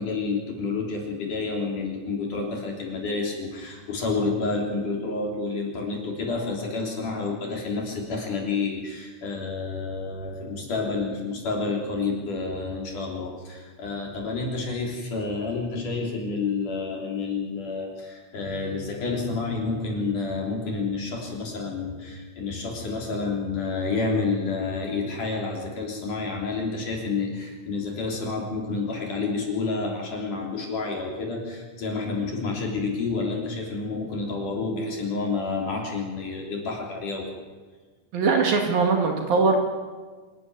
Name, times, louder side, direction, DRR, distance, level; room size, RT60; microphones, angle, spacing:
voice 1, 0.0-37.3, left 3 dB, 60° left, -1 dB, 4.9 m, -29 dB
voice 2, 38.1-39.6, right 4 dB, 70° right, 2 dB, 4.1 m, -21 dB
25.5 x 14.0 x 9.8 m, 1.4 s
omnidirectional pair, 4.3 m